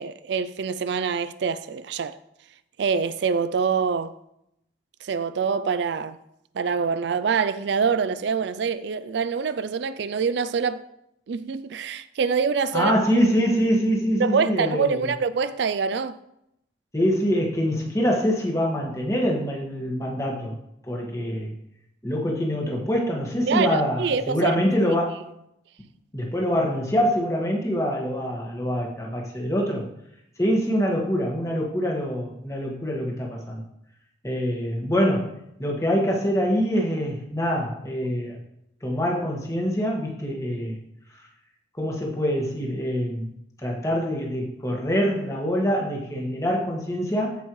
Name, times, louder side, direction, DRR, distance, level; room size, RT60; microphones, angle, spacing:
voice 1, 0.0-2.2 2.8-4.1 5.0-6.2 6.6-10.8 11.3-12.9 14.2-16.2 23.5-24.6, right 5 dB, 65° right, 0.4 m, -25 dB
voice 2, 12.7-15.1 16.9-20.6 20.8-21.5 22.0-25.2 26.1-29.9 30.4-33.6 34.2-35.3 35.6-38.4 38.8-40.8 41.7-43.3 43.6-47.4, equal, 15° left, 1.7 m, -25 dB
14.5 x 5.5 x 3.2 m
head